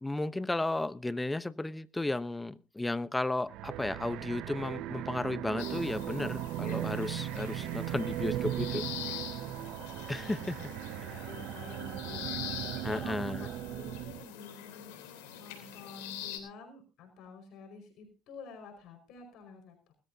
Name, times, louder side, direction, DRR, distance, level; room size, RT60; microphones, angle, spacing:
voice 1, 0.0-8.8 10.1-10.6 12.8-13.5, left 2 dB, 10° left, 16 dB, 0.8 m, -34 dB
sound 1, 3.5-14.3, right 14 dB, 65° right, 0.6 m, -38 dB
sound 2, 5.6-16.4, left 10 dB, 80° left, 3.4 m, -44 dB
voice 2, 9.0-10.3 11.0-15.0 15.4-19.9, left 5 dB, 65° left, 4 dB, 5.0 m, -50 dB
20.5 x 13.5 x 2.7 m, 0.32 s
supercardioid pair, 80°, 0 cm